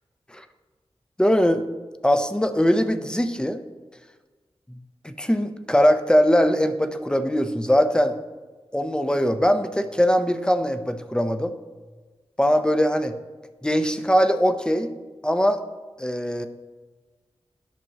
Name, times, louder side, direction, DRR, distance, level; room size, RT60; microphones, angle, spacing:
voice 1, 1.2-1.7 2.0-3.6 4.7-4.8 5.0-8.2 8.7-11.5 12.4-13.1 13.6-14.9 15.2-15.6 16.0-16.5, equal, 10° left, 9 dB, 0.5 m, -21 dB
10.5 x 6.7 x 2.8 m, 1.3 s
wide cardioid pair, 100°, 10 cm